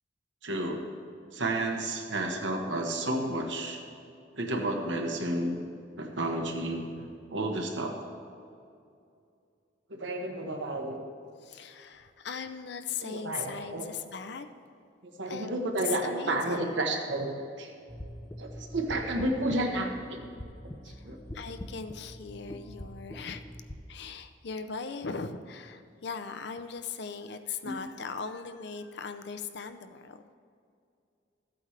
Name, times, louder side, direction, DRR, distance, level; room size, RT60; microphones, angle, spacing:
voice 1, 0.4-0.8 1.3-3.8 4.3-5.7 6.0-8.0 9.9-11.0 13.0-13.9 15.0-17.7 18.4-20.2 21.0-21.2 27.6-27.7, right 1 dB, 80° right, 2 dB, 1.3 m, -31 dB
voice 2, 11.4-14.5 15.3-15.5 15.9-16.9 20.9-21.1 21.3-23.4 23.9-30.3, left 5 dB, 65° left, 8 dB, 0.6 m, -39 dB
sound 1, 17.9-23.7, equal, 15° left, 0.5 m, -44 dB
14.0 x 8.5 x 3.3 m, 2.5 s
head